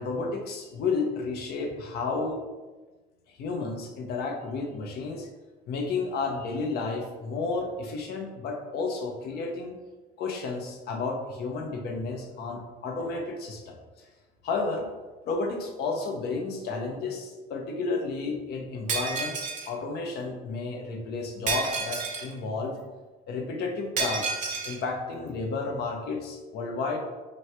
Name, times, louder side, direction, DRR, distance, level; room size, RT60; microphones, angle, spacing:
voice 1, 0.0-2.4 3.3-5.3 5.7-9.8 10.2-14.1 14.4-14.9 15.3-19.4 19.7-22.7 23.3-27.0, left 4 dB, 70° left, 2 dB, 0.8 m, -32 dB
Shatter, 18.9-19.7 21.5-22.3 24.0-24.8, right 4 dB, 50° right, 0.8 m, -30 dB
3.2 x 3.1 x 4.3 m, 1.2 s
cardioid pair, 110°, 17 cm